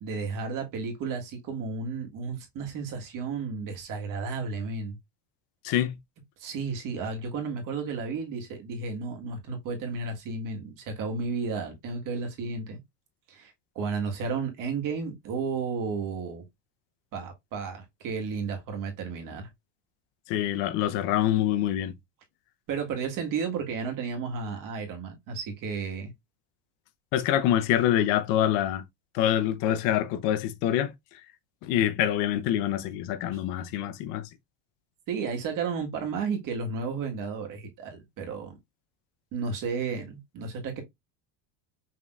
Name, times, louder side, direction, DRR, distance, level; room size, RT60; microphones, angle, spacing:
voice 1, 0.0-5.0 6.4-12.8 13.3-16.4 17.1-19.5 22.7-26.1 35.1-38.5 39.3-40.8, right 5 dB, 45° right, 1.6 m, -33 dB
voice 2, 5.6-6.0 20.3-21.9 27.1-28.8 29.1-31.3 31.6-34.3, left 11 dB, 65° left, 0.8 m, -26 dB
5.8 x 3.3 x 2.4 m
cardioid pair, 155°, 46 cm